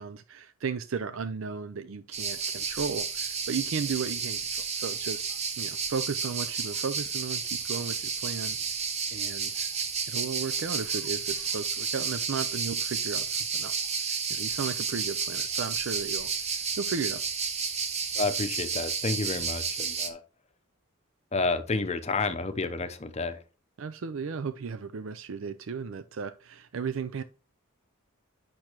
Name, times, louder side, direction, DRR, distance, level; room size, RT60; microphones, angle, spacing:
voice 1, 0.0-8.6 9.1-9.7 10.0-16.3 16.8-17.2 23.8-27.2, right 5 dB, 65° right, 0.5 m, -35 dB
sound 1, 2.1-20.1, right 5 dB, 30° right, 0.9 m, -31 dB
voice 2, 18.1-20.2 21.3-23.4, left 3 dB, 30° left, 0.8 m, -30 dB
8.5 x 6.0 x 3.0 m
head